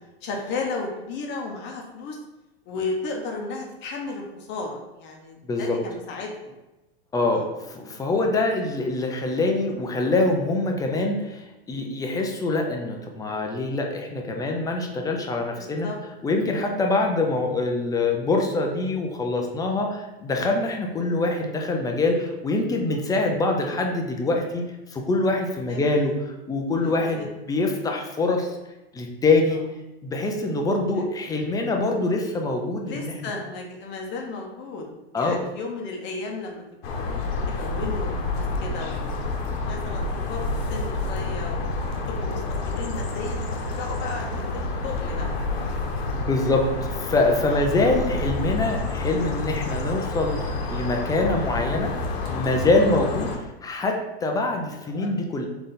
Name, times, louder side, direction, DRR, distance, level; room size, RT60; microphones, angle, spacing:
voice 1, 0.2-2.2 2.7-6.5 7.3-7.5 15.5-16.0 21.0-21.2 25.7-26.1 26.8-27.3 31.0-31.1 32.9-34.9 35.1-37.1 37.5-41.7 42.1-45.7 47.5-47.6 54.7-55.2, left 3 dB, 35° left, 1 dB, 0.8 m, -34 dB
voice 2, 5.5-5.8 7.1-15.9 16.2-24.6 24.9-28.5 28.9-29.6 30.0-33.3 35.1-35.4 46.1-51.9 52.3-53.3 53.6-55.5, left 2 dB, 10° left, 2 dB, 0.4 m, -24 dB
sound 1, 36.8-53.4, left 3 dB, 65° left, 1.0 m, -29 dB
3.7 x 3.4 x 4.0 m, 1.0 s
hypercardioid pair, 125°, 32 cm